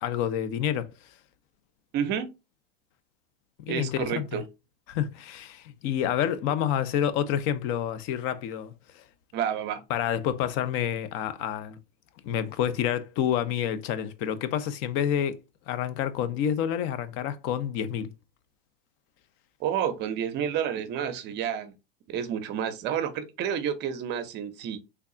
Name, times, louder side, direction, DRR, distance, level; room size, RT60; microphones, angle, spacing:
voice 1, 0.0-0.9 3.7-4.4 4.9-9.0 9.9-11.8 12.2-15.4 15.7-18.1, left 9 dB, 40° left, 0.5 m, -28 dB
voice 2, 1.9-2.3 3.7-4.4 9.3-9.8 19.6-21.7 22.1-24.8, right 9 dB, 35° right, 0.6 m, -30 dB
3.4 x 2.3 x 3.7 m
supercardioid pair, 125°, 30 cm